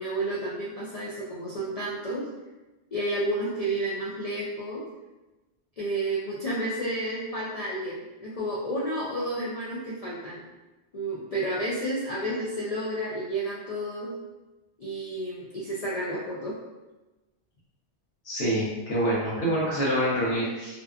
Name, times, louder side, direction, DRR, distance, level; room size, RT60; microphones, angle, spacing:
voice 1, 0.0-2.3 2.9-4.8 5.8-10.4 10.9-14.1 14.8-16.5, right 1 dB, 60° left, -7 dB, 0.4 m, -31 dB
voice 2, 18.2-20.8, right 1 dB, 85° left, -8 dB, 1.1 m, -26 dB
2.8 x 2.2 x 2.3 m, 1.1 s
omnidirectional pair, 1.1 m